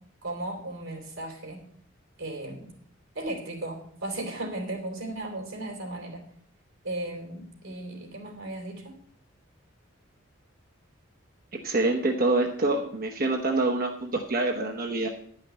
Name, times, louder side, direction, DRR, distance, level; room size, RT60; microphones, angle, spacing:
voice 1, 0.2-1.6 2.2-2.7 3.1-6.2 6.8-8.9, right 1 dB, 80° right, 1 dB, 3.3 m, -36 dB
voice 2, 11.5-15.1, right 2 dB, 45° right, 2 dB, 1.0 m, -26 dB
11.0 x 5.8 x 7.8 m, 0.63 s
head